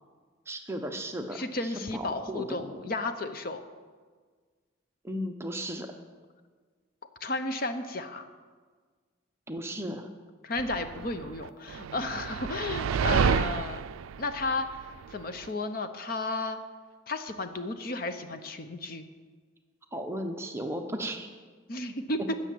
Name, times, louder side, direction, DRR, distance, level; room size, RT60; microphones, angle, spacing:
voice 1, 0.5-2.7 5.0-5.9 9.5-10.1 19.9-21.3, equal, 15° right, 4 dB, 0.8 m, -35 dB
voice 2, 1.3-3.6 7.2-8.3 10.4-13.8 14.2-16.6 17.1-19.1 21.7-22.3, left 2 dB, 45° left, 9 dB, 0.7 m, -33 dB
sound 1, 10.6-15.5, right 7 dB, 90° right, 0.3 m, -30 dB
13.5 x 6.5 x 8.6 m, 1.5 s
head